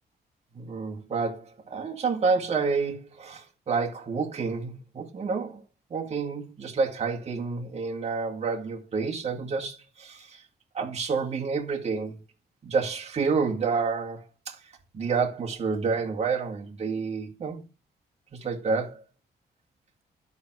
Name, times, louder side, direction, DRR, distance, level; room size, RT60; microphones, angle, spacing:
voice 1, 0.5-5.6 5.9-10.4 10.7-12.2 12.6-14.2 14.5-14.6 14.9-17.6 18.3-19.0, right 5 dB, 40° right, 2.0 m, -29 dB
12.0 x 6.1 x 4.7 m
cardioid pair, 130°, 17 cm